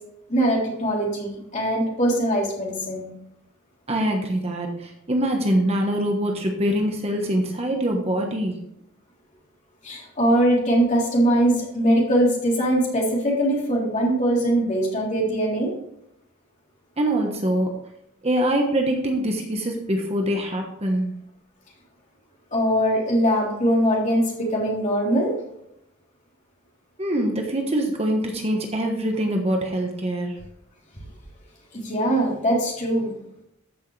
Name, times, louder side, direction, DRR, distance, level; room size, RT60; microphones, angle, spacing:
voice 1, 0.3-3.1 9.8-15.7 22.5-25.3 31.7-33.1, right 1 dB, 35° left, -3 dB, 3.6 m, -21 dB
voice 2, 3.9-8.6 17.0-17.8 18.2-21.1 27.0-30.4, right 1 dB, 30° right, 2 dB, 1.3 m, -24 dB
14.0 x 6.5 x 3.3 m, 0.79 s
head